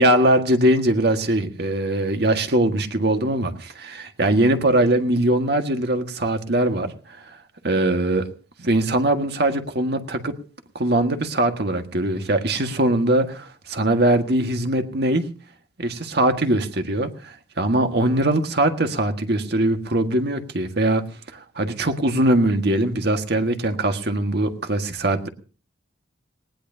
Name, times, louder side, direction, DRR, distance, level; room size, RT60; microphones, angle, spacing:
voice 1, 0.0-7.4 7.6-8.3 8.6-10.4 10.8-15.2 15.8-21.1 21.3-25.3, right 1 dB, 60° right, 6 dB, 1.7 m, -21 dB
19.5 x 18.5 x 2.8 m, 0.37 s
head